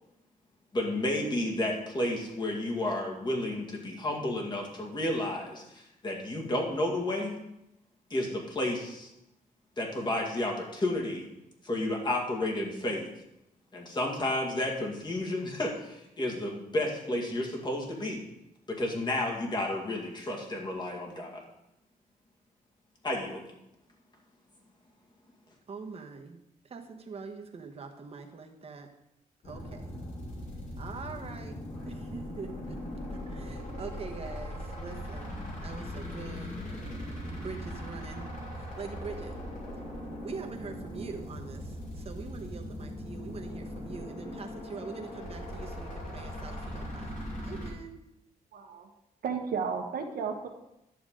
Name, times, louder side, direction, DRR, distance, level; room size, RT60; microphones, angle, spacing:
voice 1, 0.7-7.4 8.1-9.1 9.8-11.3 11.6-13.1 13.7-18.2 18.7-21.4 23.0-23.4, left 1 dB, 30° left, -1 dB, 2.1 m, -31 dB
voice 2, 25.7-28.9 29.4-29.9 30.8-31.6 31.9-32.8 33.3-36.5 37.4-39.3 40.2-48.0, right 5 dB, 40° right, 3 dB, 1.2 m, -43 dB
sound 1, 29.4-47.7, left 1 dB, 60° left, 3.4 m, -40 dB
voice 3, 48.5-48.9 49.2-50.5, right 6 dB, 85° right, 3 dB, 1.3 m, -33 dB
11.0 x 7.0 x 3.8 m, 0.86 s
wide cardioid pair, 120°, 15 cm